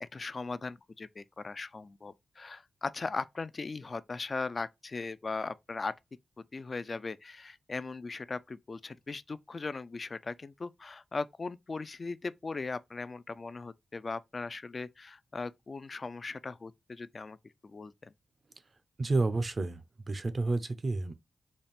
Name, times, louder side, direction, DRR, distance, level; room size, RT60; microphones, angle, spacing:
voice 1, 0.0-5.9 6.5-17.4 17.6-18.1, left 3 dB, 40° left, 0.3 m, -38 dB
voice 2, 19.0-19.8 20.1-21.1, right 3 dB, 40° right, 0.6 m, -30 dB
4.1 x 2.4 x 3.3 m
wide cardioid pair, 100°, 0 cm